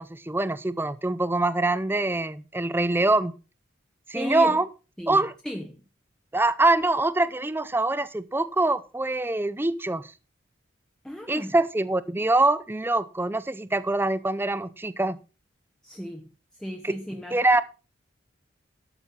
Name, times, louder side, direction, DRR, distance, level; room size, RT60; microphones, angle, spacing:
voice 1, 0.0-3.3 4.1-4.7 5.1-5.3 6.3-10.0 11.3-15.2 16.8-16.9 17.3-17.6, right 2 dB, 10° right, 0.5 m, -24 dB
voice 2, 4.1-4.6 5.0-5.8 11.0-11.6 15.8-16.3 16.6-17.4, equal, 5° left, 0.9 m, -35 dB
12.0 x 6.6 x 5.4 m
head